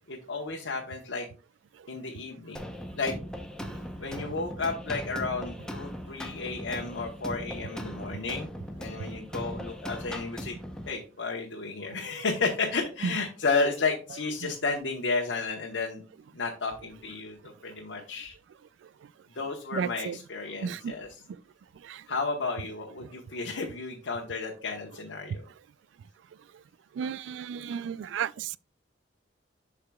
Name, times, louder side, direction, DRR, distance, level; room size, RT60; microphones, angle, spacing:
voice 1, 0.1-1.3 1.9-2.6 3.0-3.1 4.0-10.6 10.9-16.0 16.3-18.4 19.3-21.2 22.1-25.5, left 4 dB, 80° left, 1.0 m, -32 dB
sound 1, 2.5-10.9, equal, 5° left, 0.7 m, -39 dB
voice 2, 19.7-20.2 20.6-20.9 21.8-22.0 27.0-28.6, right 7 dB, 75° right, 0.3 m, -33 dB
11.5 x 4.8 x 2.3 m
head